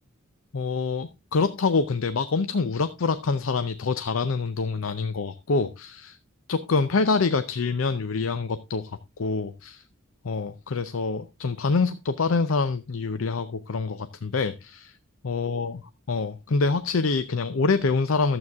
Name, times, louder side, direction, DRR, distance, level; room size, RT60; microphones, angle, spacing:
voice 1, 0.5-6.2 6.5-9.8 10.2-14.9 15.2-15.8 16.1-18.4, left 4 dB, 85° left, 0.6 m, -26 dB
12.0 x 7.8 x 3.6 m
head